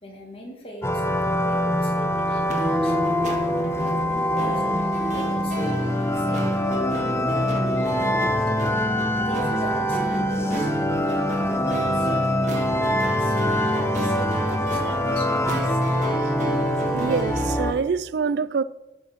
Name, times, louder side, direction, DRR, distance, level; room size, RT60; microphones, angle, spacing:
voice 1, 0.0-1.0 1.5-3.4 3.7-4.6 5.1-5.8 6.1-8.4 9.2-10.7 11.0-12.1 13.2-15.9, left 1 dB, 30° left, 1.9 m, -40 dB
sound 1, 0.8-17.7, left 1 dB, 15° left, 0.6 m, -24 dB
sound 2, 2.5-17.7, right 1 dB, 40° right, 1.5 m, -31 dB
voice 2, 16.9-18.6, right 5 dB, 70° right, 0.4 m, -25 dB
11.5 x 5.1 x 5.8 m
head